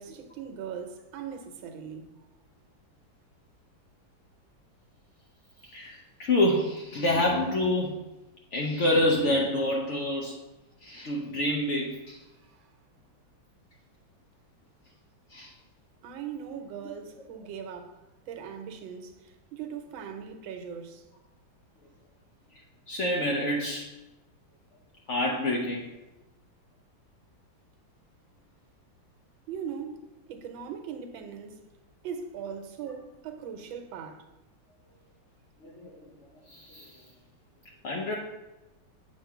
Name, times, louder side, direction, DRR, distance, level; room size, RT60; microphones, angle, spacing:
voice 1, 0.0-2.1 12.4-12.7 16.0-21.0 29.5-31.6 32.0-34.3, right 7 dB, 80° right, 1.5 m, -40 dB
voice 2, 5.7-7.9 8.5-10.4 10.8-12.2 15.3-15.5 22.9-23.9 25.1-25.9 35.6-36.0 36.5-37.0 37.8-38.2, left 1 dB, 75° left, 0.6 m, -27 dB
6.9 x 3.0 x 5.7 m
omnidirectional pair, 2.1 m